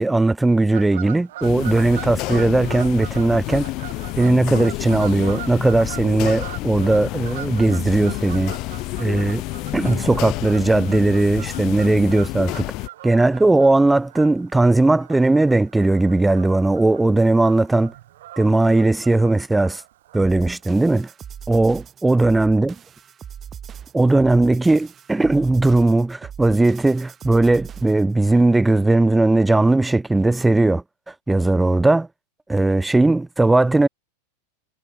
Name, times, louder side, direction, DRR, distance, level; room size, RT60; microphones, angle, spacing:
voice 1, 0.0-3.7 4.2-8.5 9.0-9.4 9.7-12.6 13.0-17.9 18.4-19.8 20.1-21.1 21.5-22.8 23.9-30.8 31.3-32.1 32.5-33.9, right 2 dB, 5° right, 0.5 m, -18 dB
Fowl / Bird vocalization bird call bird song, 0.7-20.6, right 14 dB, 75° right, 1.0 m, -41 dB
sound 1, 1.4-12.9, left 20 dB, 40° left, 0.9 m, -29 dB
sound 2, 20.2-28.1, right 8 dB, 20° right, 4.0 m, -39 dB
supercardioid pair, 150°, 0 cm